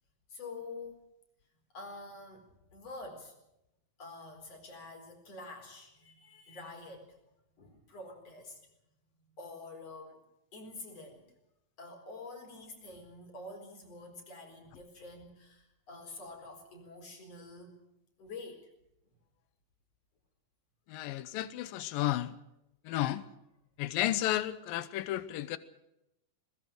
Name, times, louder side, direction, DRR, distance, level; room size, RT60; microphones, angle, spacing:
voice 1, 0.3-1.0 1.7-3.3 4.0-7.2 7.6-8.6 9.4-10.2 10.5-11.2 11.8-17.8 18.2-18.7, left 3 dB, 45° left, 4 dB, 5.4 m, -47 dB
voice 2, 20.9-22.3 22.9-23.3 23.8-25.6, left 14 dB, 90° left, 14 dB, 2.6 m, -32 dB
22.5 x 20.5 x 6.3 m, 0.86 s
omnidirectional pair, 3.9 m